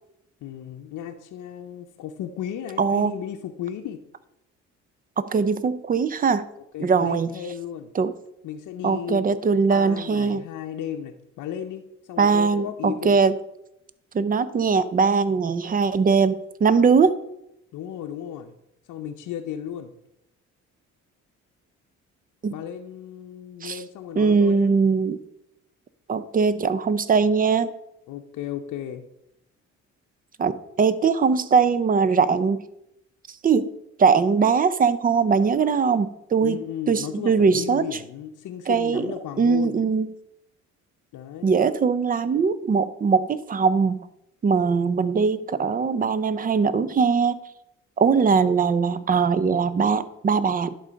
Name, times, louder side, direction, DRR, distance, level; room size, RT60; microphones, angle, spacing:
voice 1, 0.4-4.0 6.7-7.9 8.4-9.3 9.7-11.8 12.1-13.2 17.7-18.5 18.9-19.9 22.5-24.8 28.1-29.0 36.4-39.8 41.1-41.5, left 9 dB, 80° left, 4 dB, 0.7 m, -34 dB
voice 2, 2.8-3.1 5.2-6.5 6.8-7.3 8.0-8.1 8.8-10.4 12.2-13.4 14.1-17.1 22.4-22.5 23.6-23.8 24.2-25.2 26.1-27.7 30.4-32.6 33.4-33.7 34.0-37.9 38.7-39.1 39.4-40.1 41.4-44.0 44.4-47.4 48.0-50.7, right 5 dB, 30° right, 15 dB, 0.5 m, -21 dB
11.0 x 3.9 x 5.1 m, 0.83 s
cardioid pair, 90°, 30 cm